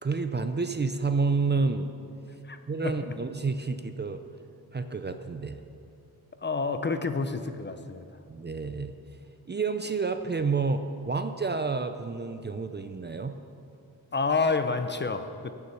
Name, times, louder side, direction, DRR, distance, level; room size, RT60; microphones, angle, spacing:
voice 1, 0.0-1.9 2.7-4.2 4.7-5.6 8.3-8.9 9.5-13.4, right 4 dB, 30° right, 8 dB, 0.5 m, -29 dB
voice 2, 2.4-2.9 6.4-8.1 14.1-15.5, left 4 dB, 30° left, 8 dB, 0.6 m, -29 dB
16.0 x 7.0 x 6.8 m, 2.5 s
wide cardioid pair, 150°, 38 cm